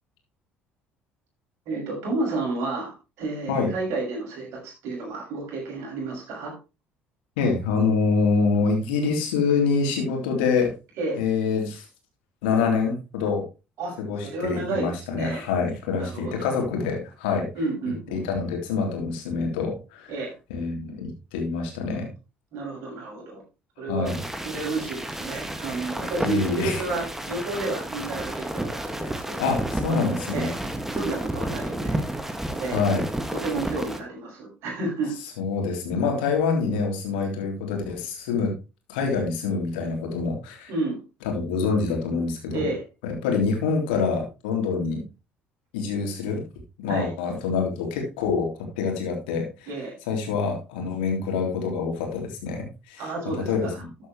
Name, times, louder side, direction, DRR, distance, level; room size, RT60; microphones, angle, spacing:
voice 1, 1.7-2.9 3.2-6.5 11.0-11.2 13.8-14.0 14.2-15.4 16.0-16.5 17.5-18.2 20.1-20.3 22.5-23.4 23.8-24.1 24.4-30.6 30.9-32.0 32.6-32.8 33.3-35.1 40.7-41.0 42.5-42.8 46.9-47.1 49.7-49.9 53.0-53.8, right 3 dB, 55° right, -1 dB, 6.5 m, -31 dB
voice 2, 7.4-10.7 11.1-11.8 12.4-13.4 14.0-17.5 18.1-20.1 20.5-22.1 23.9-24.2 26.2-26.8 29.4-30.5 32.7-33.0 35.4-38.5 38.9-40.7 41.2-42.7 43.0-45.0 45.7-46.4 46.8-48.5 48.8-49.7 50.1-53.1 53.4-53.9, left 5 dB, 65° left, 2 dB, 3.4 m, -26 dB
sound 1, 24.1-34.0, right 1 dB, 5° right, 1.9 m, -31 dB
13.0 x 8.2 x 3.1 m, 0.29 s
figure-of-eight pair, 55°, 6 cm